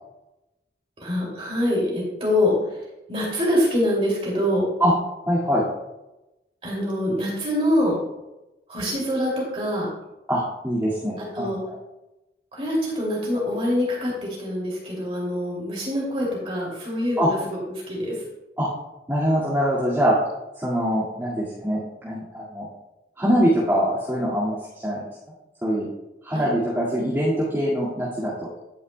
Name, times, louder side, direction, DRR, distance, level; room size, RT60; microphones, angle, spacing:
voice 1, 1.0-2.8 3.1-4.7 6.6-8.0 8.7-9.9 11.3-11.6 12.5-14.1 14.4-17.3 17.9-18.2 26.3-26.4, left 1 dB, 30° right, -4 dB, 2.5 m, -24 dB
voice 2, 5.3-5.6 10.3-11.5 17.2-17.3 18.6-18.7 19.1-20.1 20.6-22.7 23.2-24.6 24.8-25.0 25.6-25.9 26.2-28.3, equal, 15° right, -10 dB, 1.9 m, -23 dB
11.5 x 9.2 x 2.2 m, 0.99 s
head